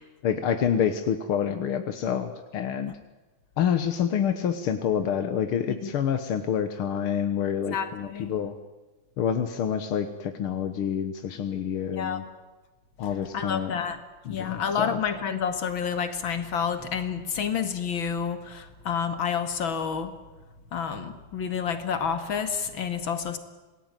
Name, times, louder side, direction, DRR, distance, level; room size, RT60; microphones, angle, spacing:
voice 1, 0.2-2.9 3.6-8.6 9.2-12.2 13.0-13.7 14.3-15.0, left 8 dB, 85° left, 8 dB, 2.1 m, -27 dB
voice 2, 7.7-8.3 11.9-12.2 13.3-14.0 14.3-20.1 20.7-23.4, left 7 dB, 70° left, 8 dB, 2.8 m, -29 dB
27.5 x 19.0 x 9.1 m, 1.2 s
omnidirectional pair, 2.3 m